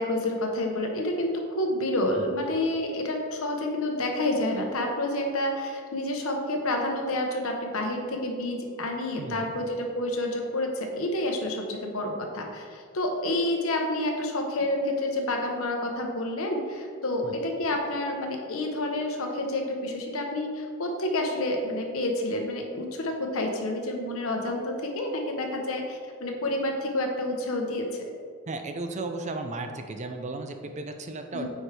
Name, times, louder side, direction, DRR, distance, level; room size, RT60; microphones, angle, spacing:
voice 1, 0.0-28.0 31.3-31.5, left 1 dB, 70° left, 2 dB, 1.0 m, -29 dB
voice 2, 28.5-31.5, right 2 dB, 30° right, 6 dB, 0.4 m, -35 dB
8.5 x 4.6 x 3.4 m, 2.1 s
head